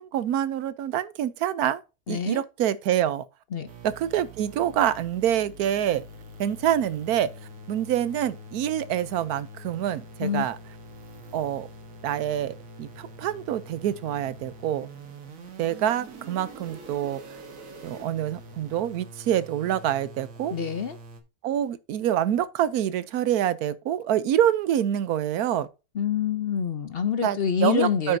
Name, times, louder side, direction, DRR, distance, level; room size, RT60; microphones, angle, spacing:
voice 1, 0.0-1.8 2.1-3.2 3.8-6.0 6.4-7.3 7.7-10.6 11.3-11.7 12.0-14.9 15.6-17.2 17.8-20.5 21.4-25.7 27.2-28.2, right 10 dB, 75° right, 1.2 m, -26 dB
voice 2, 2.1-2.4 3.5-3.7 10.2-10.5 20.5-21.0 25.9-28.2, left 7 dB, 55° left, 0.7 m, -26 dB
sound 1, 3.7-21.2, right 1 dB, 60° right, 1.7 m, -45 dB
9.2 x 7.6 x 2.7 m
omnidirectional pair, 1.6 m